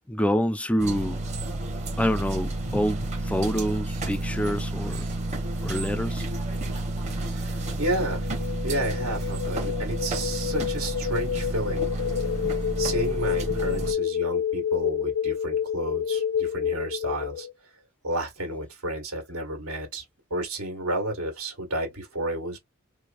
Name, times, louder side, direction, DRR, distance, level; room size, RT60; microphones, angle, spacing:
voice 1, 0.1-1.2 2.0-5.1 5.6-6.2, equal, 5° left, 0.3 m, -26 dB
sound 1, 0.8-13.9, right 2 dB, 35° right, 1.1 m, -30 dB
voice 2, 7.1-11.9 12.8-17.5 18.0-20.0 20.3-22.6, right 1 dB, 80° right, 1.7 m, -31 dB
sound 2, 7.6-17.5, left 9 dB, 75° left, 0.3 m, -29 dB
4.7 x 2.1 x 2.5 m
head